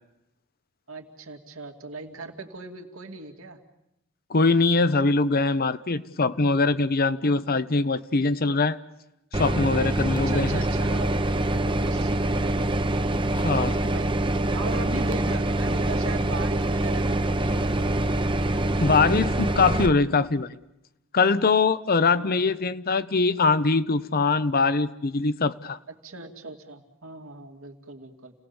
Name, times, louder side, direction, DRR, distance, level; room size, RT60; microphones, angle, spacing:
voice 1, 0.9-3.6 7.5-7.6 10.0-12.8 13.2-17.7 21.9-22.6 24.4-24.6 25.9-28.3, right 3 dB, 80° right, 3 dB, 2.7 m, -39 dB
voice 2, 4.3-8.8 9.3-10.6 13.3-13.7 18.8-20.6 21.1-25.8, left 3 dB, 45° left, 14 dB, 0.8 m, -22 dB
sound 1, 9.3-19.9, right 1 dB, 25° right, 0.9 m, -25 dB
29.5 x 18.5 x 7.1 m, 0.88 s
head